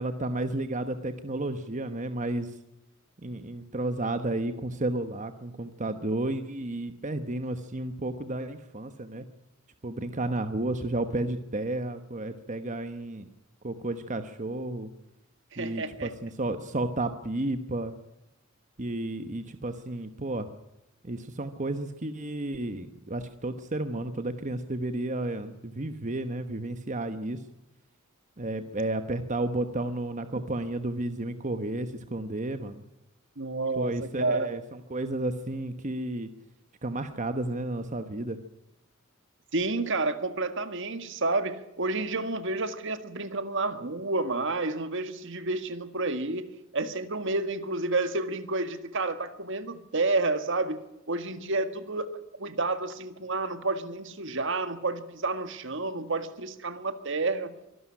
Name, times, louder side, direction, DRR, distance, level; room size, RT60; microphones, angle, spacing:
voice 1, 0.0-2.5 3.2-9.3 9.8-13.3 13.6-14.9 15.6-17.9 18.8-20.5 21.0-27.4 28.4-32.8 33.8-36.3 36.8-38.4, right 2 dB, 35° right, 9 dB, 1.1 m, -32 dB
voice 2, 15.5-16.1 33.4-34.6 39.5-52.1 52.4-57.5, right 3 dB, 65° right, 10 dB, 1.8 m, -30 dB
24.0 x 12.5 x 10.0 m, 0.92 s
head